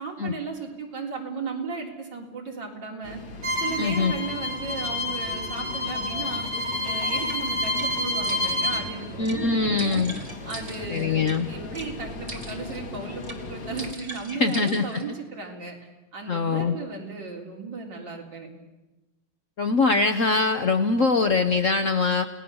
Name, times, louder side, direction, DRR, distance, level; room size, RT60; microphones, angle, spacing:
voice 1, 0.0-3.2 3.6-6.4 6.8-10.0 10.5-15.8 16.1-18.5, right 4 dB, 60° right, -1 dB, 4.4 m, -35 dB
sound 1, 3.0-13.9, left 2 dB, 65° left, 2.8 m, -38 dB
Bowed string instrument, 3.4-8.8, left 1 dB, 85° right, 5.3 m, -28 dB
voice 2, 3.8-4.1 9.2-10.1 10.9-11.5 14.3-15.0 16.3-16.8 19.6-22.3, left 4 dB, 50° left, 8 dB, 1.0 m, -23 dB
sound 2, 7.3-7.4 7.8-7.9 8.2-8.8 9.3-9.4 9.8-11.4 11.8-11.9 12.3-12.8 13.2-13.4 13.8-15.1, right 2 dB, 25° right, 2.6 m, -40 dB
29.5 x 18.5 x 7.0 m, 1.0 s
omnidirectional pair, 2.2 m